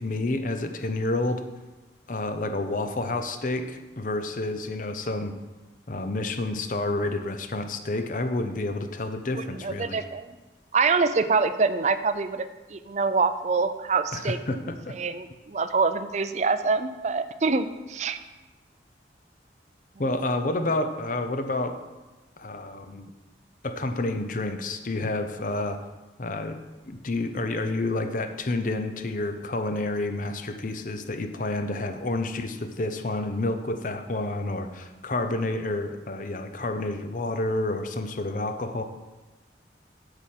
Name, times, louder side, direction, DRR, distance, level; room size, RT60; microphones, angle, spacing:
voice 1, 0.0-1.4 2.1-5.3 5.9-10.0 14.1-14.9 20.0-21.8 22.4-23.1 23.6-25.8 26.2-26.6 26.9-38.8, left 2 dB, 45° left, 7 dB, 0.7 m, -29 dB
voice 2, 9.3-10.3 10.7-14.4 14.9-18.2, right 4 dB, 40° right, 11 dB, 0.4 m, -25 dB
8.4 x 5.0 x 7.5 m, 1.1 s
head